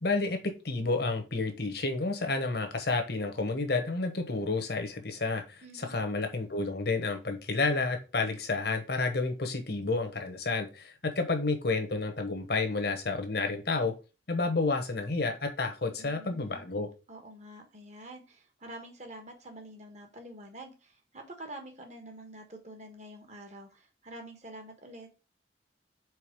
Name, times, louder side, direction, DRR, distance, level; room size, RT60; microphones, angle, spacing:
voice 1, 0.0-13.9 14.3-16.9, left 3 dB, 55° left, 1.1 m, -30 dB
voice 2, 5.6-6.0 16.0-16.7 17.1-25.1, right 1 dB, 40° right, 1.3 m, -47 dB
4.7 x 4.0 x 5.3 m
head